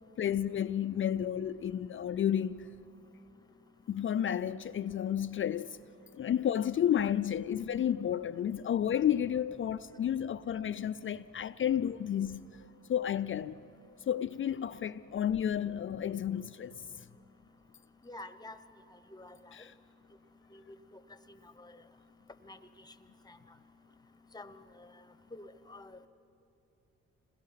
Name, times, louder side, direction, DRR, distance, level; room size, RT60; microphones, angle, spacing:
voice 1, 0.2-2.7 3.9-5.8 6.2-12.5 12.9-13.6 14.1-16.8 19.5-19.7, left 9 dB, 45° left, 0.4 m, -31 dB
voice 2, 18.1-18.6 19.1-19.4 22.5-22.6 23.3-23.4 24.3-24.5 25.3-26.0, left 2 dB, 15° left, 1.0 m, -47 dB
27.0 x 20.5 x 5.8 m
cardioid pair, 90°, 30 cm